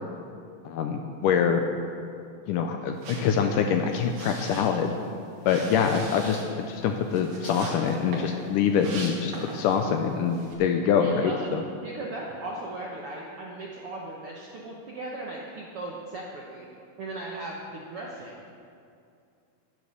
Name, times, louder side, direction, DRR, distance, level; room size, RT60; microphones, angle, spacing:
voice 1, 0.7-1.6 2.5-4.9 5.5-11.6, left 7 dB, 80° left, 5 dB, 2.0 m, -25 dB
sound 1, 3.0-9.9 10.2-10.5, right 2 dB, 90° right, 3.9 m, -41 dB
voice 2, 10.9-11.5 11.8-16.7 17.0-18.4, right 2 dB, 65° right, -3 dB, 1.4 m, -37 dB
10.5 x 10.0 x 6.6 m, 2.5 s
omnidirectional pair, 4.2 m